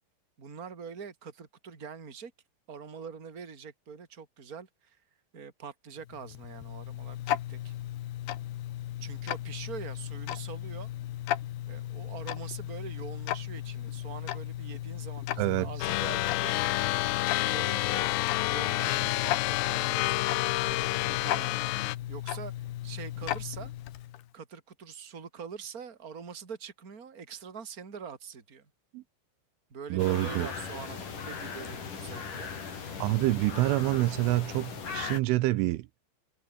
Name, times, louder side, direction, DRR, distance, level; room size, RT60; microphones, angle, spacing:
voice 1, 0.4-2.3 2.7-5.0 5.3-7.7 9.0-10.9 11.7-16.8 17.5-21.7 22.1-23.7 24.3-28.7 29.7-32.5, right 6 dB, 20° right, 2.7 m, -44 dB
Tick-tock, 6.0-24.3, left 13 dB, 65° left, 2.9 m, -36 dB
voice 2, 15.4-15.7 28.9-29.0 29.9-30.5 33.0-35.9, right 19 dB, 85° right, 3.2 m, -27 dB
sound 1, 15.8-22.0, left 20 dB, 85° left, 3.4 m, -29 dB
sound 2, 30.0-35.2, left 6 dB, 40° left, 5.2 m, -38 dB
omnidirectional pair, 5.9 m